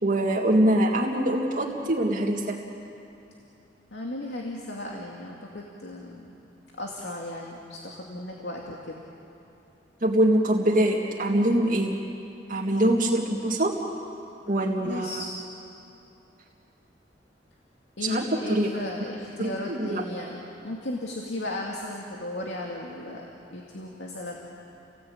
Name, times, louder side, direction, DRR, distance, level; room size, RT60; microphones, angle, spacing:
voice 1, 0.0-2.6 10.0-12.0 12.5-13.8 14.5-15.2 18.0-18.7 19.4-20.0, right 1 dB, 50° right, -2 dB, 2.0 m, -24 dB
voice 2, 3.9-6.3 6.8-8.9 14.5-15.3 18.0-24.3, left 1 dB, 85° left, -1 dB, 2.4 m, -36 dB
30.0 x 18.5 x 8.8 m, 2.8 s
head